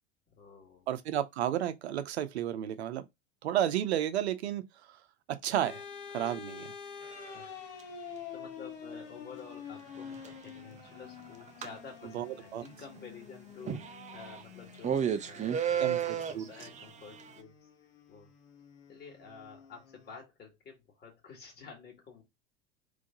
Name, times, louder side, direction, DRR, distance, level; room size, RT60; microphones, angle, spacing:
voice 1, 0.4-0.9 6.2-6.4 6.8-7.6 8.3-17.5 18.1-18.3 18.9-22.2, left 5 dB, 30° left, 2.1 m, -51 dB
voice 2, 0.9-3.1 3.4-4.6 5.3-5.8 6.1-6.7 12.1-12.6 15.8-16.5, right 11 dB, 75° right, 0.8 m, -32 dB
sound 1, 5.6-20.2, left 7 dB, 55° left, 1.4 m, -48 dB
sound 2, 7.1-7.3 10.0-10.3 11.0-11.2 11.5-11.7 12.6-12.7 13.0-13.1 13.7-14.4 14.8-17.3, right 8 dB, 20° right, 0.7 m, -32 dB
3.7 x 3.4 x 3.8 m
hypercardioid pair, 80°, 33 cm